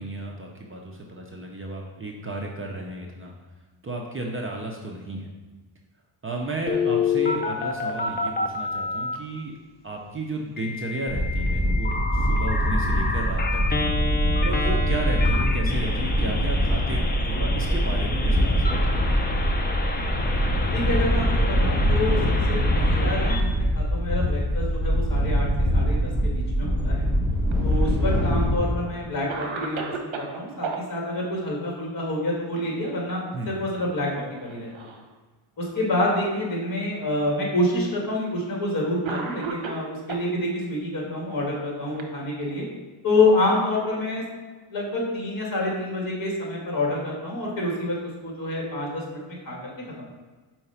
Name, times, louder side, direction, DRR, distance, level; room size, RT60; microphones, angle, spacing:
voice 1, 0.0-3.3 3.8-5.3 6.2-9.6 9.8-13.9 14.4-19.1 33.3-33.5, right 2 dB, 25° right, 0 dB, 0.6 m, -33 dB
Telephone, 6.7-9.2 10.6-23.4, left 4 dB, 20° left, 0.5 m, -29 dB
sound 1, 11.1-28.6, equal, 5° right, 1.9 m, -23 dB
voice 2, 20.7-22.2 22.5-27.1 27.6-34.9 35.6-42.6 43.0-44.2 44.7-48.0 48.2-49.7 50.0-50.1, left 2 dB, 45° left, -3 dB, 2.1 m, -27 dB
Cough, 27.5-28.3 28.9-29.0 29.3-30.8 32.7-33.1 33.4-33.6 34.4-35.1 35.9-36.0 37.0-37.1 38.2-38.4 39.0-40.3 41.3-42.7, right 4 dB, 70° right, 0.9 m, -35 dB
4.9 x 4.5 x 5.6 m, 1.3 s
cardioid pair, 130°, 48 cm